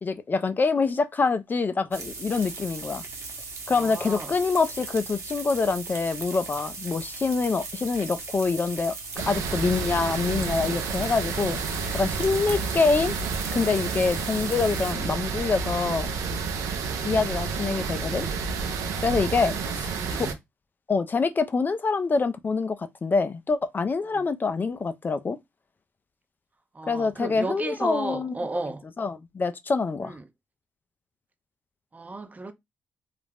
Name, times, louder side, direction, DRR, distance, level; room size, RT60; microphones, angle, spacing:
voice 1, 0.0-3.0 3.7-8.9 9.3-11.6 11.9-13.1 13.5-16.1 17.0-18.3 19.0-20.3 20.9-25.4 26.9-28.3 29.0-30.1, left 4 dB, 35° left, 0.4 m, -25 dB
sound 1, 1.9-14.9, right 4 dB, 60° right, 0.9 m, -38 dB
voice 2, 3.7-4.3 12.3-12.6 17.4-18.0 19.4-19.5 19.9-20.4 24.1-24.2 26.7-28.8 30.0-30.3 31.9-32.5, right 2 dB, 30° right, 0.5 m, -35 dB
sound 2, 9.2-20.3, right 5 dB, 80° right, 0.5 m, -30 dB
2.4 x 2.0 x 3.3 m
supercardioid pair, 55°, 5 cm